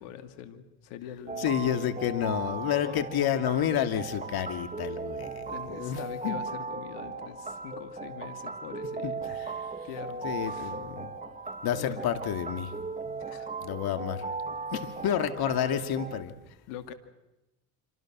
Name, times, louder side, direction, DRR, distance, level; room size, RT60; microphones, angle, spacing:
voice 1, 0.0-1.9 2.8-3.0 5.5-9.2 9.8-10.8 11.8-12.1 13.1-13.5 16.7-16.9, left 10 dB, 75° left, 8 dB, 2.7 m, -43 dB
sound 1, 1.3-16.2, right 3 dB, 15° right, 1.8 m, -37 dB
voice 2, 1.4-6.0 6.2-6.4 9.0-9.1 10.2-11.1 11.6-12.7 13.0-13.3 13.6-16.3, left 9 dB, 60° left, 8 dB, 2.7 m, -30 dB
27.5 x 25.0 x 6.3 m, 0.97 s
supercardioid pair, 80°, 42 cm